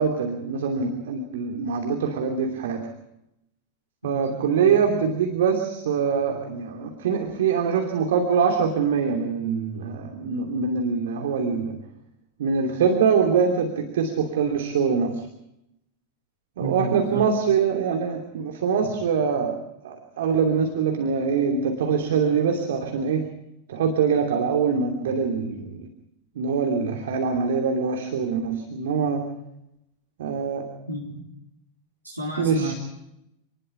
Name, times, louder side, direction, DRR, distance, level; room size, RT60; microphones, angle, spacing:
voice 1, 0.0-2.9 4.0-11.9 12.4-15.3 16.6-23.3 23.7-25.9 26.3-29.3 30.2-30.7 32.4-32.7, right 6 dB, 60° right, 3 dB, 2.8 m, -24 dB
voice 2, 4.1-4.7 16.6-17.2 18.8-18.9 30.9-31.2 32.0-32.7, right 2 dB, 85° right, -2 dB, 4.0 m, -31 dB
27.5 x 20.5 x 4.8 m, 0.84 s
figure-of-eight pair, 90°, 0 cm